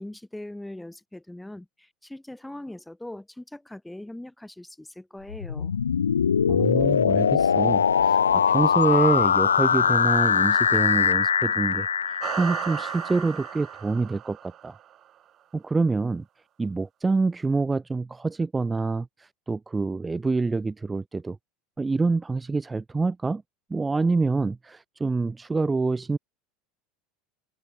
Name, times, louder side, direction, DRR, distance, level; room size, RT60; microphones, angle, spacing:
voice 1, 0.0-5.7, left 1 dB, 5° left, 5.7 m, -41 dB
sound 1, 5.3-13.2, left 7 dB, 75° left, 0.4 m, -22 dB
voice 2, 6.5-14.8 15.5-16.2 16.6-21.4 21.8-23.4 23.7-26.2, right 3 dB, 15° right, 1.4 m, -26 dB
sound 2, 12.2-15.0, right 11 dB, 40° right, 1.1 m, -35 dB
figure-of-eight pair, 75°, 0 cm